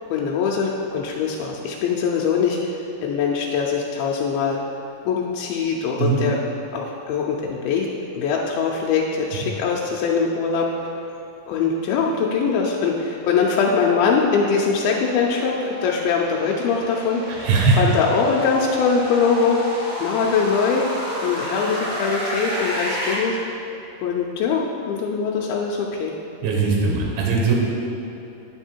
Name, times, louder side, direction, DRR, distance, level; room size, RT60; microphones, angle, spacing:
voice 1, 0.1-2.6 3.0-4.6 5.1-6.3 6.7-7.9 8.1-10.7 11.5-17.5 17.8-19.6 20.0-20.9 21.2-23.4 24.0-26.1, left 5 dB, 90° left, -2 dB, 2.5 m, -22 dB
sound 1, 14.0-23.1, equal, 35° right, 1.9 m, -32 dB
voice 2, 17.3-18.0 26.4-27.5, right 4 dB, 80° right, -2 dB, 2.7 m, -20 dB
9.9 x 4.8 x 4.4 m, 2.8 s
omnidirectional pair, 4.2 m